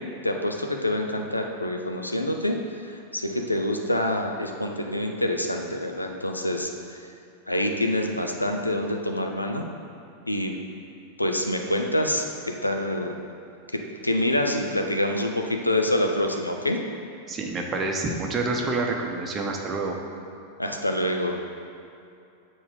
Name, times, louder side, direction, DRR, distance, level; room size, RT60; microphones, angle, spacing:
voice 1, 0.2-2.6 3.1-6.7 7.5-9.6 10.3-10.5 11.2-12.3 12.6-13.2 13.7-16.8 20.6-21.4, left 1 dB, 85° left, 3 dB, 0.5 m, -26 dB
voice 2, 17.3-20.0, right 3 dB, 25° right, 0 dB, 0.9 m, -28 dB
7.0 x 4.0 x 4.9 m, 2.6 s
figure-of-eight pair, 90°, 0 cm